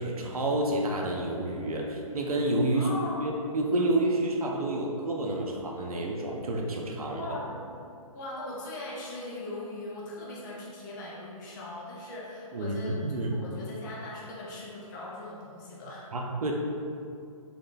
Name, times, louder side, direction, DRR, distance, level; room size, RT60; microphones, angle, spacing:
voice 1, 0.0-2.9 3.2-7.2 12.5-13.4 16.1-16.5, right 1 dB, 75° right, 0 dB, 0.6 m, -29 dB
voice 2, 2.7-3.3 7.0-7.7 8.1-16.1, left 2 dB, 30° left, -5 dB, 0.7 m, -40 dB
3.8 x 2.1 x 3.8 m, 2.4 s
hypercardioid pair, 145°, 19 cm